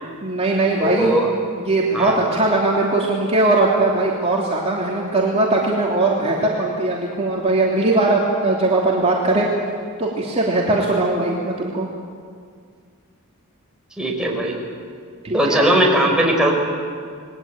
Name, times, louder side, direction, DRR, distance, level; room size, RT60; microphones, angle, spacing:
voice 1, 0.2-1.2 1.6-9.5 10.0-11.9 15.2-15.7, right 2 dB, 30° right, -3 dB, 3.0 m, -20 dB
voice 2, 0.8-1.3 1.9-2.2 14.0-14.6 15.3-16.6, right 1 dB, 5° right, -1 dB, 4.9 m, -18 dB
28.0 x 21.0 x 9.0 m, 2.1 s
head